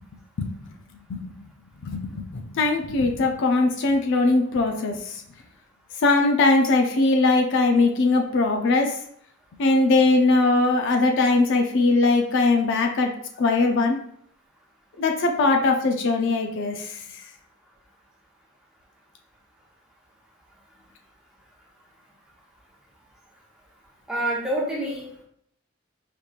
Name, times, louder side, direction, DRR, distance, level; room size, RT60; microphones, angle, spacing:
voice 1, 1.8-5.2 6.0-9.0 9.6-13.1 13.4-14.0 15.0-17.0, left 3 dB, 60° left, 3 dB, 0.4 m, -21 dB
voice 2, 24.1-25.2, right 1 dB, 5° right, -4 dB, 0.8 m, -27 dB
5.0 x 2.9 x 2.4 m, 0.67 s
head